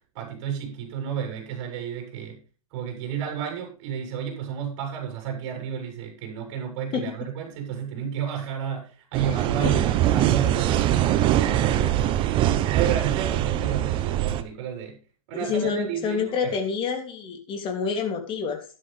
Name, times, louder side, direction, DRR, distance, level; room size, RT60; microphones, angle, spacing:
voice 1, 0.1-2.4 2.7-15.0 15.3-16.6, right 8 dB, 45° right, 3 dB, 7.3 m, -32 dB
sound 1, 9.1-14.4, right 12 dB, 30° right, 0.9 m, -22 dB
voice 2, 15.3-18.6, left 6 dB, 30° left, 5 dB, 3.1 m, -28 dB
13.0 x 11.5 x 3.5 m, 0.36 s
hypercardioid pair, 115°, 18 cm